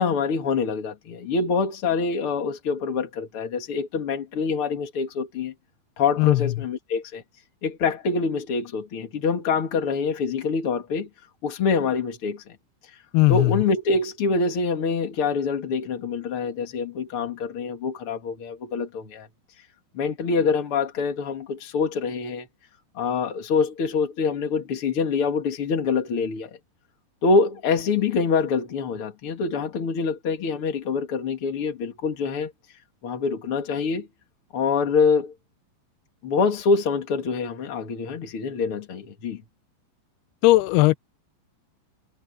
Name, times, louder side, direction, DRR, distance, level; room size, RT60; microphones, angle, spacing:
voice 1, 0.0-5.5 6.0-7.2 7.6-11.1 11.4-12.4 12.9-13.0 13.3-19.3 19.9-22.5 22.9-26.6 27.2-32.5 33.0-34.1 34.5-35.3 36.2-39.4, left 4 dB, 45° left, 1.8 m, -25 dB
voice 2, 13.1-13.5 40.4-41.0, left 19 dB, 85° left, 2.3 m, -17 dB
omnidirectional pair, 5.4 m